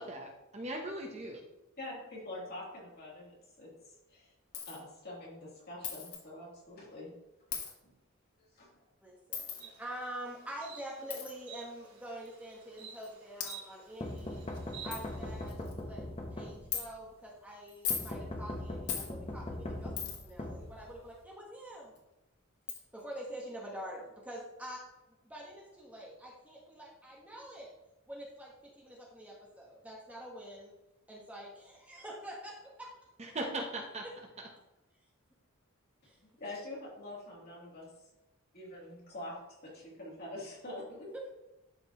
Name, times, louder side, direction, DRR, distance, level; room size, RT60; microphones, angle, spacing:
voice 1, 0.0-1.4 33.2-34.1 34.4-34.5, right 1 dB, 30° right, 1 dB, 0.9 m, -39 dB
voice 2, 1.8-3.7 4.1-4.3 4.7-7.1 7.8-7.9 8.4-8.8 36.4-37.9 38.5-39.4 39.6-41.1, left 1 dB, 45° left, -5 dB, 3.1 m, -45 dB
Coin (dropping), 4.5-4.8 5.8-6.2 7.5-7.7 9.3-9.6 11.1-11.3 12.2-12.3 13.0-13.1 13.4-13.5 14.2-14.3 14.5-14.6 14.9-15.0 15.5-15.8 16.7-16.8 17.7-18.1 18.9-19.1 20.0-20.3 22.0-22.1 22.7-22.8, left 8 dB, 90° left, 1.6 m, -37 dB
voice 3, 9.0-14.4 14.8-16.0 16.3-21.9 22.7-24.8 25.2-27.7 28.1-30.7 31.1-32.9 36.0-36.2 41.1-41.3, right 1 dB, 5° right, -3 dB, 1.4 m, -46 dB
Insect, 9.6-15.5, right 7 dB, 85° right, 2.6 m, -52 dB
sound 1, 14.0-17.0 17.9-21.2, left 1 dB, 25° left, 1.0 m, -41 dB
11.5 x 5.2 x 3.1 m, 0.98 s
head